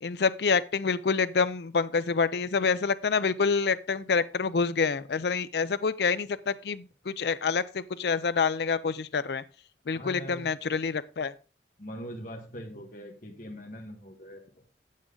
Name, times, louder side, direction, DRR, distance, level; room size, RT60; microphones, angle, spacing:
voice 1, 0.0-9.4 9.9-11.3, left 5 dB, 70° left, 0.5 m, -27 dB
voice 2, 9.9-10.5 11.8-14.4, equal, 45° left, 1.5 m, -41 dB
8.5 x 7.4 x 3.8 m
head